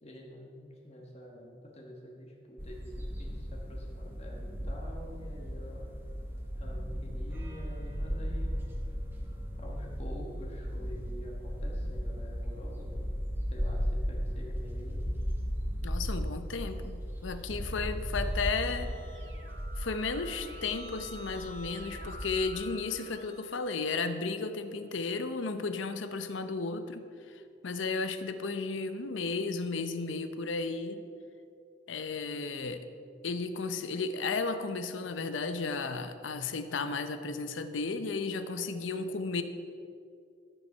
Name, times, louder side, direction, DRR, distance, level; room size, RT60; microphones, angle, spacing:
voice 1, 0.0-5.9 6.6-8.5 9.6-13.0 13.5-15.1, equal, 35° left, -1 dB, 1.4 m, -47 dB
sound 1, 2.6-22.5, equal, 10° right, 1.3 m, -36 dB
voice 2, 15.8-19.0 19.8-31.0 31.9-32.9 33.2-39.4, left 4 dB, 85° left, 10 dB, 0.7 m, -34 dB
Keyboard (musical), 17.9-24.5, equal, 70° right, 1.1 m, -50 dB
12.5 x 6.9 x 5.5 m, 2.4 s
head